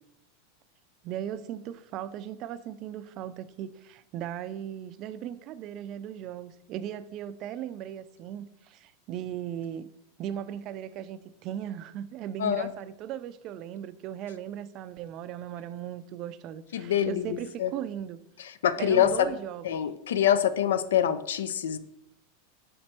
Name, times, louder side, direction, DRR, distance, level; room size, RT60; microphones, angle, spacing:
voice 1, 1.0-9.9 10.2-18.2 18.8-19.7, right 10 dB, 45° right, 0.3 m, -37 dB
voice 2, 12.4-12.7 16.7-17.7 18.4-19.3 19.6-21.8, left 9 dB, 90° left, 0.4 m, -25 dB
5.0 x 4.4 x 4.3 m
supercardioid pair, 130°, 0 cm